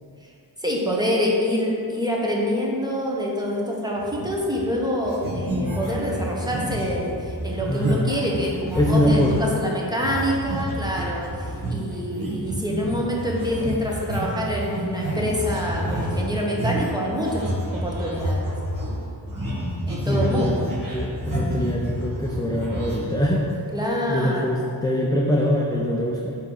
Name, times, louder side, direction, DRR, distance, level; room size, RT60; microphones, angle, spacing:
voice 1, 0.6-18.5 19.9-20.7 23.7-24.5, equal, 10° right, -3 dB, 1.1 m, -26 dB
sound 1, 4.0-4.8 5.0-9.5 10.0-23.7, right 1 dB, 45° right, 1.3 m, -29 dB
voice 2, 7.6-8.1 8.8-9.4 20.1-20.7 20.9-23.5 24.1-26.4, equal, 10° left, -2 dB, 0.4 m, -23 dB
9.2 x 3.1 x 3.8 m, 2.5 s
wide cardioid pair, 80°, 45 cm